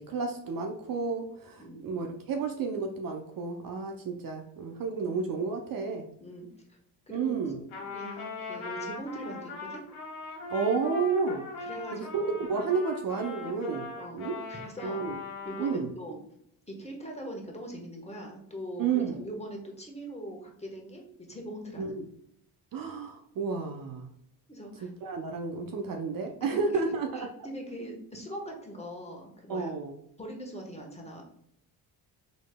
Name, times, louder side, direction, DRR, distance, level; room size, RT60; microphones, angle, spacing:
voice 1, 0.0-6.0 7.1-7.6 10.5-11.4 11.9-13.9 14.2-14.4 14.8-15.2 15.6-15.9 18.8-19.2 21.8-22.0 22.7-24.1 24.8-27.3 29.5-29.9, right 5 dB, 45° right, 3 dB, 0.6 m, -31 dB
Trumpet, 7.7-15.8, left 4 dB, 80° left, 1.3 m, -40 dB
voice 2, 7.9-9.8 11.6-12.3 13.9-14.2 14.5-15.0 15.4-16.2 16.7-18.9 19.2-21.0 21.3-22.0 24.5-24.9 26.4-26.5 27.1-29.7 30.2-31.2, equal, 15° left, 0 dB, 1.2 m, -41 dB
4.1 x 3.1 x 2.2 m, 0.71 s
supercardioid pair, 55°, 47 cm